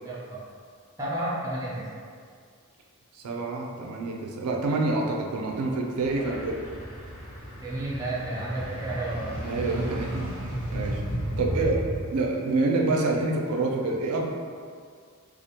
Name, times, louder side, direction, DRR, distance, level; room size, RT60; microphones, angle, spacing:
voice 1, 0.0-0.4 1.0-1.9 6.2-6.4 7.6-9.3 11.5-11.7, right 1 dB, 15° right, -7 dB, 0.4 m, -32 dB
voice 2, 3.2-6.5 9.4-11.0 11.4-14.3, right 3 dB, 85° right, 0 dB, 0.4 m, -27 dB
sound 1, 6.0-12.0, right 1 dB, 75° left, 0.8 m, -34 dB
2.4 x 2.1 x 2.7 m, 2.1 s
head